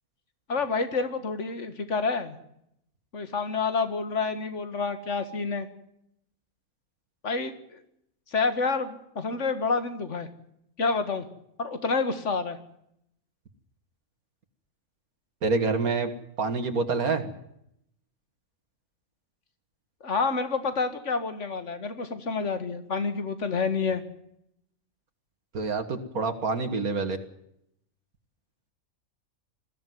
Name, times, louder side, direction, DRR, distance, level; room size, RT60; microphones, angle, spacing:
voice 1, 0.5-2.4 3.1-5.7 7.2-7.8 8.3-10.3 10.8-11.2 11.6-12.6 20.0-24.0, left 4 dB, 55° left, 9 dB, 2.2 m, -28 dB
voice 2, 15.4-16.1 16.4-17.3 25.5-27.2, right 4 dB, 90° right, 5 dB, 2.3 m, -27 dB
21.0 x 15.0 x 9.4 m, 0.77 s
omnidirectional pair, 1.5 m